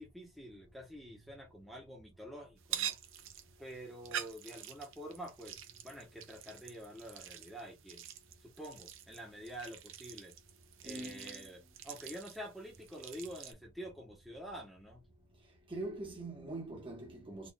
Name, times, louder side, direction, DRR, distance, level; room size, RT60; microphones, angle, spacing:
voice 1, 0.0-3.0 3.6-5.6 5.8-8.1 8.4-10.4 10.8-15.0, equal, ahead, 1.0 m, -47 dB
sound 1, 2.6-13.5, right 10 dB, 60° right, 0.5 m, -46 dB
voice 2, 10.8-11.5 15.7-17.5, right 2 dB, 25° right, 1.0 m, -43 dB
4.0 x 2.5 x 2.2 m
head